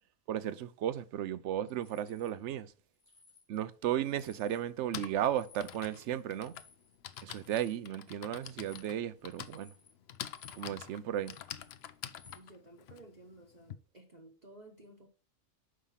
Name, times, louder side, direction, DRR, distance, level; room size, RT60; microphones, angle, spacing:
voice 1, 0.3-2.7 3.5-6.5 7.2-9.7 10.5-11.4, right 11 dB, 65° right, 0.8 m, -35 dB
sound 1, 1.7-2.3 2.9-3.7 4.0-4.7 5.0-10.8 11.1-12.4, left 4 dB, 30° left, 1.5 m, -61 dB
Typing, 3.6-3.7 4.6-13.7, left 10 dB, 60° left, 0.7 m, -46 dB
voice 2, 12.3-15.1, right 2 dB, 35° right, 1.1 m, -55 dB
6.4 x 5.2 x 5.7 m
omnidirectional pair, 1.4 m